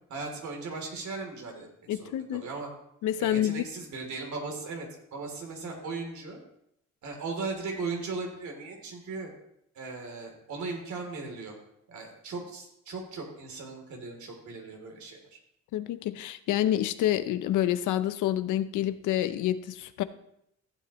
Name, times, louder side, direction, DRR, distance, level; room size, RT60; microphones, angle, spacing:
voice 1, 0.1-2.7 3.2-6.4 7.0-9.3 9.7-11.5 11.9-15.2, right 3 dB, 70° right, 3.1 m, -37 dB
voice 2, 1.9-2.4 3.0-3.6 15.7-20.0, left 12 dB, 85° left, 0.7 m, -28 dB
15.0 x 8.4 x 3.0 m
cardioid pair, 90°, 30 cm